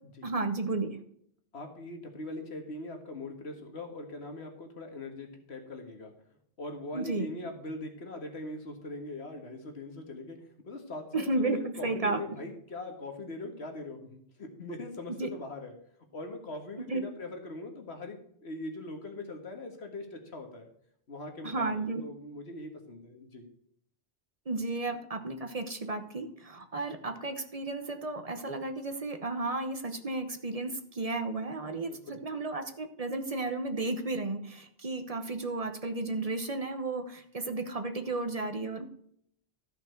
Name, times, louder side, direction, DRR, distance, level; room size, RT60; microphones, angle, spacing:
voice 1, 0.2-1.0 6.9-7.3 11.1-12.2 15.2-15.3 16.9-17.0 21.4-22.0 24.5-38.9, right 2 dB, 40° right, 8 dB, 0.9 m, -33 dB
voice 2, 1.5-6.1 6.6-10.4 10.6-15.7 16.1-20.7 21.1-23.4 31.9-32.2, left 2 dB, 85° left, 4 dB, 1.9 m, -41 dB
13.5 x 5.9 x 4.5 m, 0.68 s
omnidirectional pair, 1.1 m